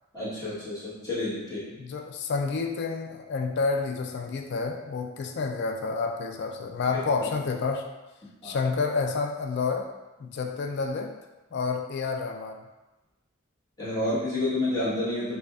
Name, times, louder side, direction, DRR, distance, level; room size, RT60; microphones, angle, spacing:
voice 1, 0.1-1.6 8.4-8.6 13.8-15.4, left 2 dB, 20° left, -10 dB, 1.2 m, -29 dB
voice 2, 1.8-7.9 8.4-9.9 10.2-11.1 11.5-12.6, left 4 dB, 55° left, 3 dB, 0.3 m, -29 dB
4.9 x 2.2 x 2.3 m, 1.1 s
head